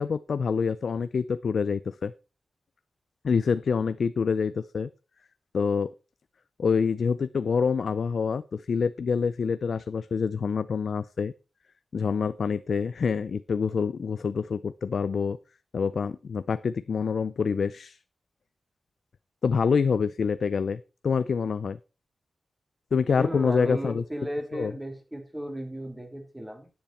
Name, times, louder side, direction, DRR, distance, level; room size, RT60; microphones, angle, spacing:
voice 1, 0.0-2.1 3.2-4.9 5.5-5.9 6.6-11.3 11.9-15.4 15.7-18.0 19.4-21.8 22.9-24.0 24.5-24.7, left 5 dB, 70° left, 14 dB, 0.5 m, -26 dB
voice 2, 23.2-26.7, equal, 15° right, 3 dB, 3.3 m, -35 dB
10.5 x 9.4 x 4.3 m, 0.31 s
wide cardioid pair, 95°, 0 cm